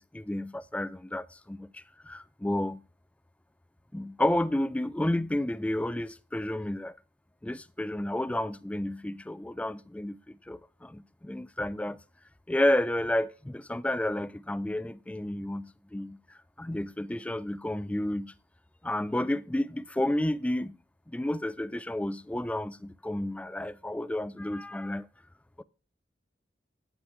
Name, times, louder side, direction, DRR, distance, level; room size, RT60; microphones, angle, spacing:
voice 1, 0.0-2.8 3.9-7.0 7.4-12.0 12.5-16.2 16.6-18.3 18.8-20.8 21.1-25.1 25.6-25.7, left 1 dB, 10° left, 0.3 m, -31 dB
8.8 x 8.7 x 3.2 m
head